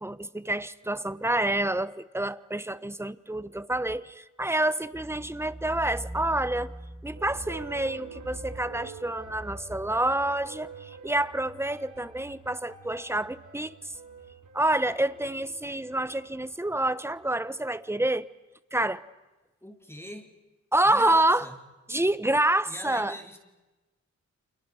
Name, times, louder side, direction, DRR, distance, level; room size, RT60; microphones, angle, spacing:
voice 1, 0.0-6.7 7.0-13.7 14.5-18.3 18.7-19.0 20.7-21.5 21.9-23.2, right 1 dB, 10° right, 1.1 m, -27 dB
sound 1, 7.1-17.4, right 4 dB, 80° right, 6.9 m, -47 dB
voice 2, 19.6-20.3 20.8-21.6 22.7-23.4, equal, 10° left, 4.0 m, -42 dB
30.0 x 28.5 x 6.6 m
wide cardioid pair, 105°, 30 cm